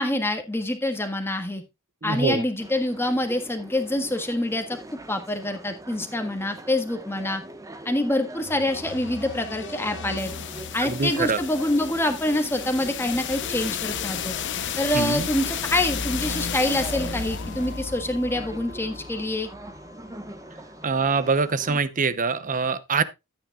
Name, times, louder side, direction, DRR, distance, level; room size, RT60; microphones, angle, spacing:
voice 1, 0.0-1.6 2.0-4.8 5.1-7.4 7.8-10.3 10.7-14.3 14.8-19.5, left 1 dB, 10° left, 1.6 m, -26 dB
voice 2, 2.0-2.4 10.8-11.4 14.9-15.3 20.8-23.0, right 4 dB, 40° right, 0.8 m, -24 dB
sound 1, 2.6-21.8, right 1 dB, 15° right, 1.2 m, -42 dB
sound 2, 8.4-20.3, left 6 dB, 55° left, 0.8 m, -33 dB
13.0 x 8.8 x 2.3 m
head